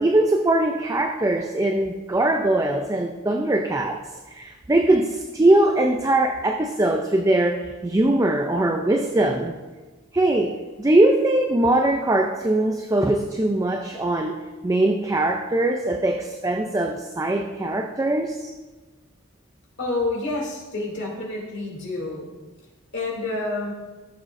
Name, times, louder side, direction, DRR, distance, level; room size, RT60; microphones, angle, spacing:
voice 1, 0.0-4.0 4.3-9.6 10.1-18.5, right 1 dB, 15° right, 4 dB, 0.4 m, -21 dB
voice 2, 19.8-22.3 22.9-23.7, left 2 dB, 55° left, -3 dB, 2.7 m, -28 dB
15.5 x 7.2 x 2.6 m, 1.3 s
head